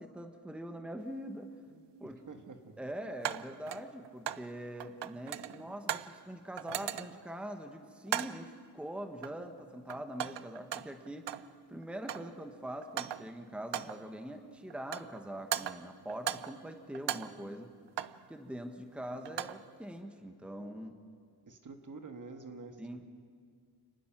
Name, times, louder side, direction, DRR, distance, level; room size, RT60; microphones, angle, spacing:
voice 1, 0.0-1.5 2.0-2.2 2.8-11.3 11.7-17.7 18.3-20.9 22.8-23.0, right 1 dB, 5° right, 5 dB, 1.2 m, -43 dB
sound 1, 1.0-1.1 3.2-4.5 4.8-6.2 6.6-7.3 8.1-8.5 9.2-9.6 9.9-11.5 11.8-12.4 12.8-13.4 13.7-14.1 14.7-15.2 15.5-16.6 16.9-18.3 19.1-19.7, right 11 dB, 85° right, 0.7 m, -38 dB
voice 2, 1.7-2.8 19.1-19.3 20.5-20.9 21.5-23.0, right 3 dB, 45° right, 5 dB, 1.8 m, -49 dB
29.0 x 19.5 x 6.1 m, 2.1 s
wide cardioid pair, 140°, 41 cm